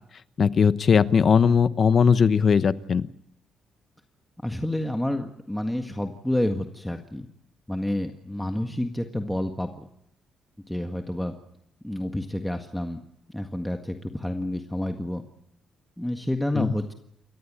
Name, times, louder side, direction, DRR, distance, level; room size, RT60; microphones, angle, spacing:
voice 1, 0.4-3.1 16.5-16.7, left 6 dB, 50° left, 14 dB, 1.0 m, -19 dB
voice 2, 4.4-7.3 7.7-9.9 10.7-11.3 11.8-13.0 13.3-15.2 16.0-16.9, left 1 dB, 5° left, 4 dB, 1.7 m, -29 dB
28.5 x 14.5 x 8.7 m, 0.77 s
cardioid pair, 90°, 0 cm